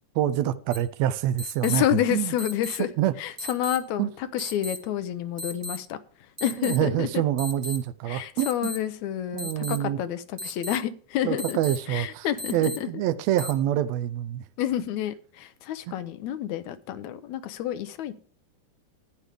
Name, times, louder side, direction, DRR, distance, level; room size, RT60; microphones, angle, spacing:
voice 1, 0.2-2.3 3.0-3.1 4.0-4.1 6.6-8.7 9.3-10.0 11.2-12.3 12.5-14.4, right 12 dB, 75° right, 1.7 m, -26 dB
sound 1, 0.7-0.8 1.4-1.8 2.4-2.8 3.4-3.8 4.4-4.8 5.4-5.8 6.4-6.8 7.4-7.8 8.4-8.8 9.4-9.8 10.4-10.8 11.4-11.8 12.4-12.8 13.4-13.5, left 1 dB, 15° right, 1.0 m, -35 dB
voice 2, 1.6-2.9 3.2-6.0 6.4-7.2 8.1-11.6 11.9-13.0 14.6-18.1, left 11 dB, 75° left, 2.0 m, -29 dB
13.5 x 9.8 x 3.4 m
omnidirectional pair, 3.5 m